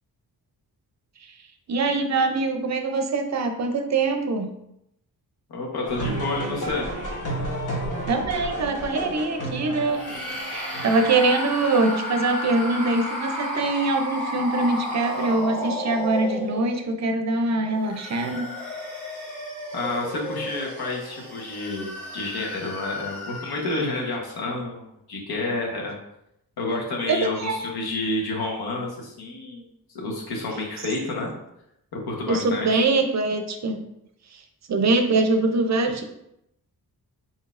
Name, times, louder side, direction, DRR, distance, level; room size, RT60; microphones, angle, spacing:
voice 1, 1.7-4.5 8.1-10.1 10.5-18.5 27.1-27.6 32.3-33.8 34.3-34.4 34.7-36.0, right 3 dB, 50° right, 6 dB, 0.5 m, -23 dB
voice 2, 5.5-6.9 19.7-26.0 26.6-29.7 29.9-31.3 31.9-32.9, left 2 dB, 85° left, -1 dB, 1.1 m, -29 dB
sound 1, 5.8-11.0, right 1 dB, 55° left, 1.1 m, -31 dB
sound 2, 9.9-16.9 17.6-24.2, left 1 dB, 5° left, 1.2 m, -33 dB
4.0 x 3.9 x 2.4 m, 0.81 s
wide cardioid pair, 125°, 37 cm